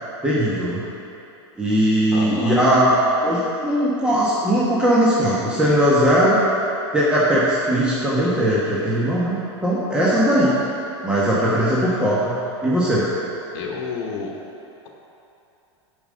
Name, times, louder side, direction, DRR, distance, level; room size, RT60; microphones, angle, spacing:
voice 1, 0.2-0.8 1.6-2.9 3.2-6.4 6.9-10.6 11.0-12.3 12.6-13.0, equal, 5° right, -8 dB, 1.5 m, -19 dB
voice 2, 2.1-2.6 13.5-14.3, left 5 dB, 65° left, -1 dB, 1.2 m, -29 dB
6.9 x 5.5 x 6.5 m, 2.8 s
hypercardioid pair, 100°, 15 cm